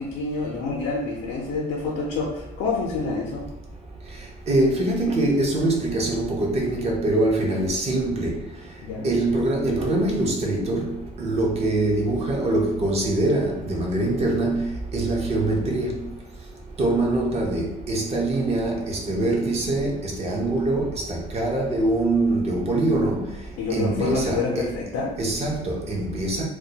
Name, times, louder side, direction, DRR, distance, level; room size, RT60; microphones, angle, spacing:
voice 1, 0.0-3.5 8.8-9.1 23.6-25.1, left 4 dB, 85° left, -3 dB, 0.5 m, -27 dB
voice 2, 4.5-8.4 9.0-10.9 11.2-14.6 14.9-15.9 16.8-23.3 23.7-24.7 25.2-26.4, right 2 dB, 40° right, -1 dB, 0.6 m, -23 dB
2.2 x 2.1 x 2.7 m, 0.84 s
cardioid pair, 110°, 17 cm